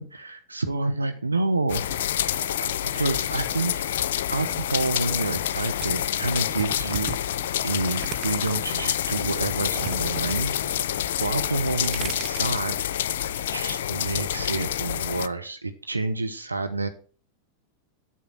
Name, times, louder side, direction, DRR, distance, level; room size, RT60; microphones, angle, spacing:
voice 1, 0.0-3.8 4.3-7.2 7.6-10.5 11.2-12.8 13.5-16.9, right 3 dB, 80° right, 8 dB, 1.0 m, -29 dB
sound 1, 1.7-15.3, left 11 dB, 60° left, 0.5 m, -27 dB
sound 2, 5.8-8.7 9.1-10.4 10.6-11.1 11.5-12.6, right 9 dB, 35° right, 0.9 m, -37 dB
9.2 x 8.4 x 6.2 m, 0.40 s
figure-of-eight pair, 90°, 0 cm